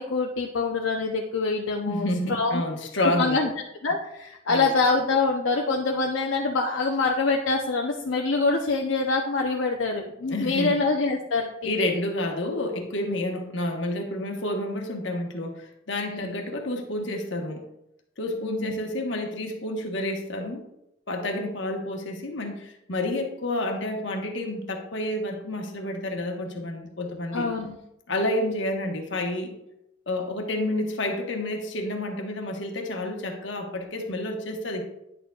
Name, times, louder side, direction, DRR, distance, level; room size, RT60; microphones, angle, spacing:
voice 1, 0.0-2.6 3.0-3.5 3.8-11.7 16.1-16.3 18.4-18.8 27.3-27.8, left 3 dB, 90° left, 0 dB, 0.7 m, -25 dB
voice 2, 1.8-3.4 4.5-4.7 10.3-10.8 11.6-17.6 18.2-20.6 21.1-27.5 28.1-29.5 30.1-34.8, left 1 dB, 75° left, 3 dB, 1.2 m, -29 dB
9.9 x 6.8 x 2.3 m, 0.85 s
head